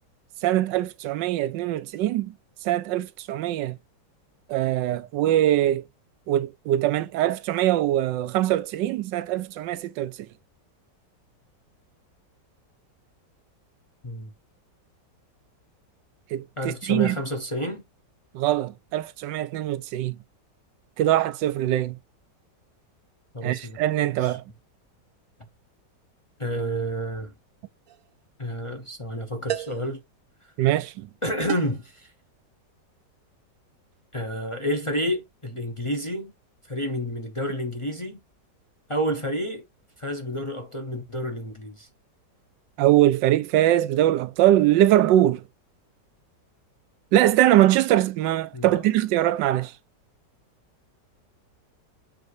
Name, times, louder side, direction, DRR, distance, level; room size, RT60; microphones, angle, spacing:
voice 1, 0.4-2.3 2.6-3.8 4.5-5.8 6.3-10.3 16.3-17.2 18.3-20.2 21.0-22.0 23.4-24.4 30.6-31.1 42.8-45.4 47.1-49.7, right 13 dB, 90° right, 1.3 m, -22 dB
voice 2, 16.6-17.8 23.3-23.8 24.2-24.4 26.4-27.3 28.4-30.0 31.2-32.1 34.1-36.3 36.7-38.2 38.9-39.6 40.0-41.9 48.5-48.8, equal, 40° left, 0.4 m, -30 dB
sound 1, 27.9-28.1 29.5-29.9 31.5-31.9, right 11 dB, 65° right, 0.9 m, -32 dB
7.5 x 2.6 x 4.8 m
omnidirectional pair, 1.9 m